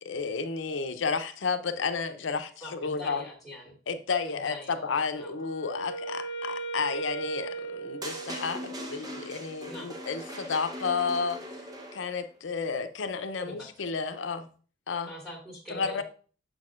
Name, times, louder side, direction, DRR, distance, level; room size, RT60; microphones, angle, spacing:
voice 1, 0.0-3.2 3.9-11.4 11.9-14.5 14.9-15.1 15.7-16.0, left 5 dB, 85° left, 0.6 m, -32 dB
voice 2, 2.6-3.7 4.3-4.8 5.1-5.4 9.6-9.9 13.4-13.7 15.1-16.0, left 1 dB, ahead, 2.3 m, -43 dB
Wind instrument woodwind instrument, 5.1-9.0, right 3 dB, 60° left, 1.2 m, -37 dB
sound 1, 8.0-12.3, right 1 dB, 20° right, 0.8 m, -40 dB
6.7 x 6.3 x 2.4 m
head